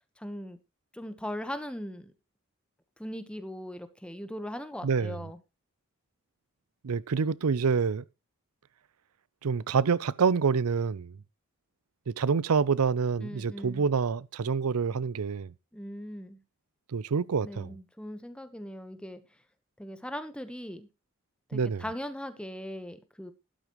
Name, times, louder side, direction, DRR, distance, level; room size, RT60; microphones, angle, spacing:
voice 1, 0.2-0.6 0.9-2.1 3.0-5.4 13.2-13.8 15.7-16.4 17.4-19.2 19.8-20.9 21.5-23.3, equal, 5° left, 1.1 m, -39 dB
voice 2, 4.8-5.2 6.8-8.0 9.4-11.1 12.1-15.5 16.9-17.7 21.5-21.8, right 5 dB, 90° right, 0.5 m, -27 dB
13.0 x 12.0 x 3.1 m
head